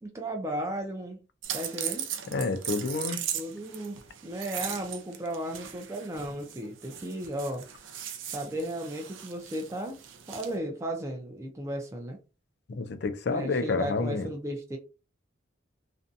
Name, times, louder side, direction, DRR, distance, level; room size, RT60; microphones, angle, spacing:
voice 1, 0.0-1.2 1.5-2.1 3.3-7.6 8.3-10.0 10.3-12.2 13.3-14.8, right 1 dB, 15° right, 0.4 m, -35 dB
sound 1, 1.4-10.6, right 9 dB, 75° right, 0.4 m, -38 dB
voice 2, 2.3-3.2 12.7-14.3, left 3 dB, 55° left, 0.4 m, -29 dB
2.5 x 2.2 x 2.5 m
head